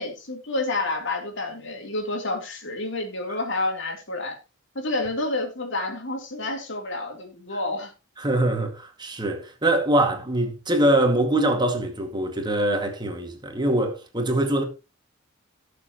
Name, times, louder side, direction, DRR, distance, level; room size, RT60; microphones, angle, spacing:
voice 1, 0.0-4.4 4.8-7.9, left 2 dB, 65° left, 3.5 m, -29 dB
voice 2, 8.2-14.6, right 1 dB, 20° right, 2.1 m, -23 dB
18.5 x 7.0 x 3.1 m
head